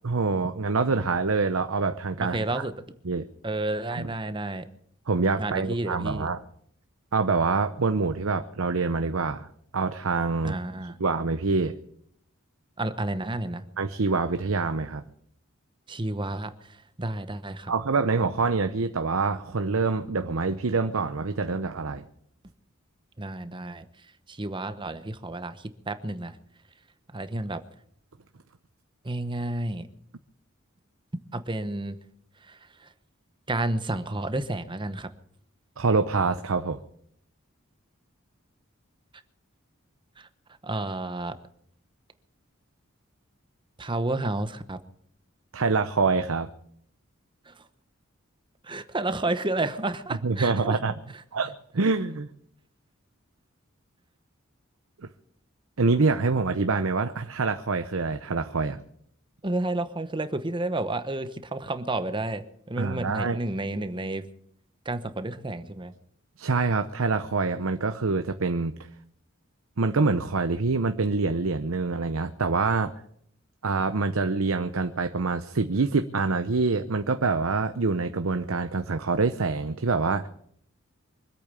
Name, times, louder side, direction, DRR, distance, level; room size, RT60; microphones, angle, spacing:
voice 1, 0.0-2.4 3.0-3.3 4.0-4.1 5.1-6.4 7.1-9.5 9.7-10.6 11.0-11.7 13.8-15.0 17.7-22.0 35.8-36.8 45.5-46.5 50.2-50.9 51.3-52.3 55.0-55.1 55.8-58.8 62.8-63.4 66.4-68.7 69.8-72.9 73.6-80.3, right 4 dB, 85° right, 8 dB, 0.8 m, -25 dB
voice 2, 2.2-2.7 3.4-4.7 5.4-6.3 10.4-10.9 12.8-13.6 15.9-17.7 23.2-23.8 24.3-26.4 27.1-27.6 29.0-29.9 31.3-32.0 32.5-32.9 33.5-35.1 40.2-40.3 40.6-41.3 43.8-44.8 47.5-47.6 48.6-50.8 59.4-64.3 64.8-65.9, right 2 dB, 25° right, 10 dB, 1.0 m, -31 dB
24.5 x 8.6 x 6.8 m, 0.68 s
head